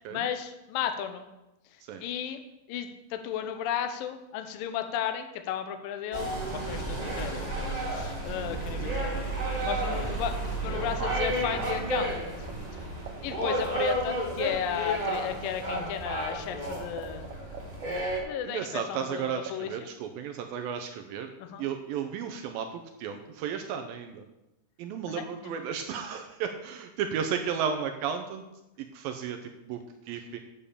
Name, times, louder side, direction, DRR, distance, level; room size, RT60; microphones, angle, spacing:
voice 1, 0.1-1.3 2.0-2.4 2.7-9.3 9.6-12.3 12.7-12.8 13.2-17.3 18.2-19.7 21.4-21.7 25.1-25.5, left 9 dB, 80° left, 7 dB, 2.1 m, -34 dB
sound 1, 6.1-18.2, right 1 dB, 20° right, 0.9 m, -32 dB
sound 2, 12.0-12.5 12.8-14.9 15.1-15.2 15.4-19.1 19.4-19.7, right 10 dB, 65° right, 2.4 m, -40 dB
voice 2, 18.4-21.3 21.6-24.2 24.8-28.4 28.8-29.8 30.1-30.4, right 7 dB, 85° right, 6 dB, 2.1 m, -34 dB
9.0 x 6.8 x 7.0 m, 0.96 s
omnidirectional pair, 4.9 m